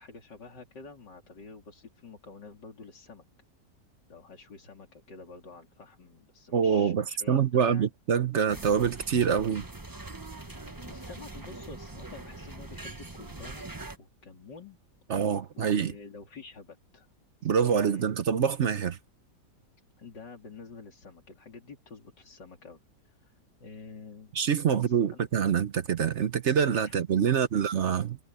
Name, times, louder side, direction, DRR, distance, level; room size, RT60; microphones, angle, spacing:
voice 1, 0.0-3.2 4.1-7.9 10.3-13.7 14.0-14.8 15.5-17.1 17.7-18.1 20.0-24.3 24.6-25.3 26.9-27.0, left 4 dB, 90° left, 3.9 m, -48 dB
voice 2, 6.5-9.6 15.1-15.9 17.4-19.0 24.4-28.2, right 7 dB, 50° right, 1.0 m, -25 dB
sound 1, 8.5-14.0, right 2 dB, 15° right, 1.0 m, -42 dB
omnidirectional pair, 1.8 m